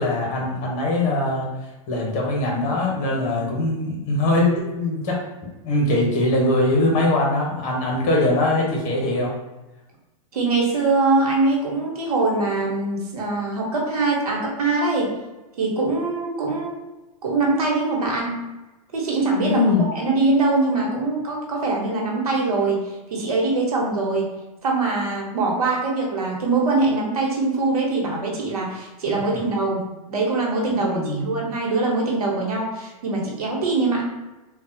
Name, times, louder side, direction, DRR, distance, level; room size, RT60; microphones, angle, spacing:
voice 1, 0.0-1.5 1.9-5.2 5.6-9.3 19.4-19.8 29.1-29.2 30.8-31.3, left 2 dB, 40° left, -2 dB, 1.1 m, -22 dB
voice 2, 10.3-15.2 15.6-16.7 17.2-18.4 18.9-19.6 19.9-22.8 23.1-24.3 24.6-29.8 30.1-34.0, right 3 dB, 85° right, -2 dB, 1.0 m, -22 dB
3.4 x 2.3 x 2.7 m, 1.1 s
hypercardioid pair, 115°, 19 cm